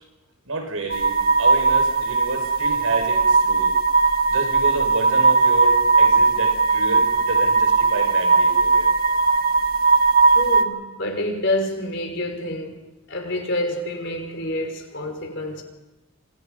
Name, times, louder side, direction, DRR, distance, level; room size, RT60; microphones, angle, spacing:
voice 1, 0.5-3.7 4.3-8.9, right 2 dB, 75° right, 5.7 m, -30 dB
sound 1, 0.9-10.6, right 4 dB, 40° right, 1.6 m, -18 dB
voice 2, 10.3-15.6, left 1 dB, 55° left, 4.9 m, -28 dB
28.5 x 26.0 x 5.4 m
head